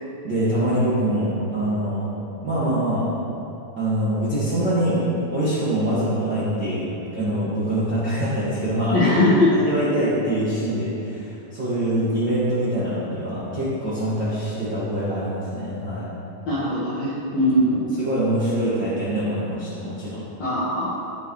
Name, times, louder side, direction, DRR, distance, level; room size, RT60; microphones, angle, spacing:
voice 1, 0.2-2.1 2.4-3.1 3.8-9.1 9.6-16.1 17.9-20.2, right 1 dB, 50° right, -12 dB, 1.3 m, -24 dB
voice 2, 8.9-9.5 16.5-18.1 20.4-20.9, left 1 dB, 60° left, -10 dB, 1.8 m, -20 dB
15.0 x 6.3 x 3.2 m, 2.8 s
omnidirectional pair, 5.2 m